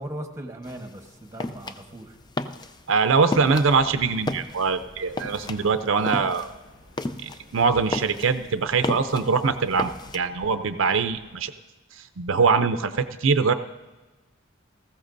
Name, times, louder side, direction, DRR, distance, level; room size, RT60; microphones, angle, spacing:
voice 1, 0.0-2.1, right 1 dB, 15° right, 4 dB, 1.1 m, -38 dB
sound 1, 0.6-10.2, left 2 dB, 20° left, 0.4 m, -34 dB
voice 2, 2.9-6.5 7.2-11.5 11.9-13.5, right 5 dB, 70° right, 9 dB, 0.6 m, -23 dB
Chatter / Car passing by / Traffic noise roadway noise, 3.3-11.4, equal, 70° left, 4.6 m, -50 dB
18.5 x 15.0 x 2.6 m, 1.2 s
head